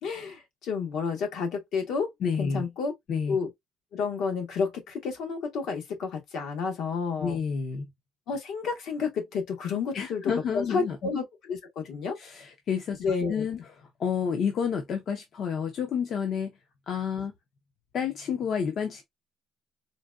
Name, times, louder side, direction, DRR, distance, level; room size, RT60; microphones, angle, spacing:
voice 1, 0.0-2.1 2.4-2.9 3.3-3.5 3.9-7.4 8.3-12.2 13.0-13.4, left 5 dB, 70° left, 1.2 m, -30 dB
voice 2, 2.2-2.6 3.1-3.4 7.2-7.9 9.9-11.0 12.2-16.5 16.9-17.3 17.9-19.0, left 7 dB, 50° left, 0.6 m, -30 dB
3.9 x 2.2 x 2.3 m
cardioid pair, 125°, 0 cm